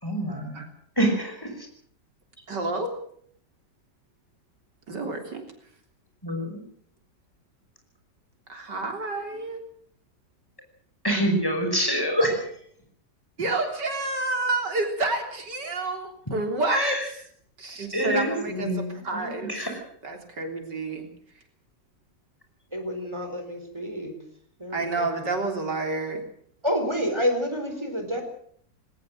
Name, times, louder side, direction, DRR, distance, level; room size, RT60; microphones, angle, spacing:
voice 1, 0.0-0.6 1.0-1.7 6.2-6.6 11.0-12.6 16.7-17.1 17.9-19.8, right 1 dB, 10° left, 3 dB, 5.6 m, -26 dB
voice 2, 2.5-2.9 4.9-5.4 8.5-9.6 13.4-17.0 17.6-19.5 20.0-21.1 24.7-26.2, right 2 dB, 75° right, 5 dB, 4.2 m, -29 dB
voice 3, 22.7-24.1 24.6-25.1 26.6-28.2, equal, 15° right, 6 dB, 4.2 m, -28 dB
20.0 x 18.5 x 7.7 m, 0.63 s
omnidirectional pair, 1.9 m